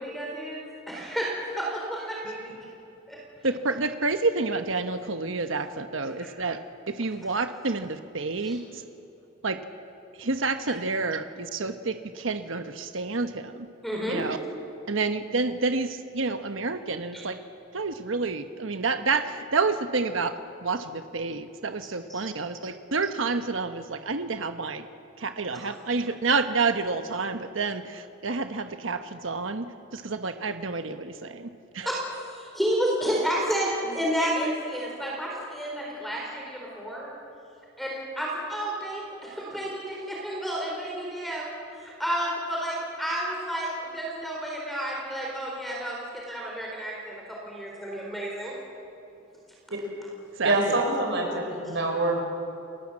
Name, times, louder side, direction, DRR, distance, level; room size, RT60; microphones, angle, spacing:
voice 1, 0.0-2.4 3.1-3.2 8.4-8.5 13.8-14.2 17.1-17.2 22.1-22.2 31.8-32.0 32.3-37.1 37.8-48.5, equal, ahead, -2 dB, 4.3 m, -31 dB
voice 2, 3.4-6.6 6.9-8.8 9.4-9.6 10.2-13.7 14.1-14.4 14.9-17.4 17.7-24.9 25.2-31.9 50.4-50.8, right 3 dB, 75° right, 8 dB, 1.1 m, -29 dB
voice 3, 50.4-52.2, right 2 dB, 60° right, 2 dB, 5.1 m, -25 dB
29.5 x 20.5 x 7.6 m, 2.9 s
head